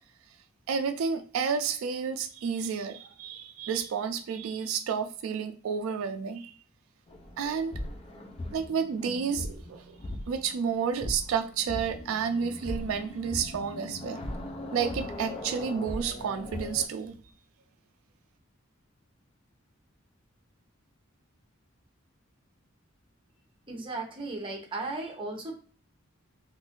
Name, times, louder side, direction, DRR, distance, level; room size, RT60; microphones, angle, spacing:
voice 1, 0.7-6.5 7.4-7.7 8.5-10.0 10.3-14.2 14.7-17.1, right 6 dB, 80° right, 7 dB, 0.3 m, -31 dB
sound 1, 7.1-16.9, left 1 dB, 30° left, 0.5 m, -39 dB
voice 2, 23.7-25.5, right 2 dB, 25° right, 1 dB, 0.8 m, -36 dB
2.5 x 2.5 x 3.6 m, 0.43 s
head